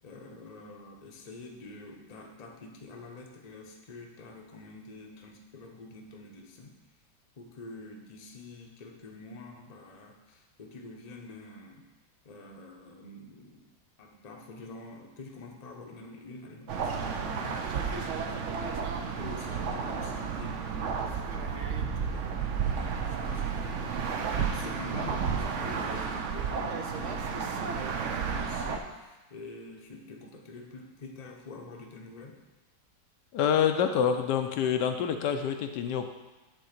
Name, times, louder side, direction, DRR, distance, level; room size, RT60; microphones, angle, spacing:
voice 1, 0.0-6.7 7.4-11.9 12.2-13.7 14.0-17.7 18.1-23.8 24.3-32.4, left 2 dB, 35° left, 1 dB, 0.7 m, -46 dB
sound 1, 16.7-28.8, right 6 dB, 60° right, 0.8 m, -32 dB
voice 2, 33.3-36.1, left 8 dB, 80° left, 6 dB, 1.2 m, -27 dB
8.4 x 3.7 x 6.6 m, 1.1 s
omnidirectional pair, 1.9 m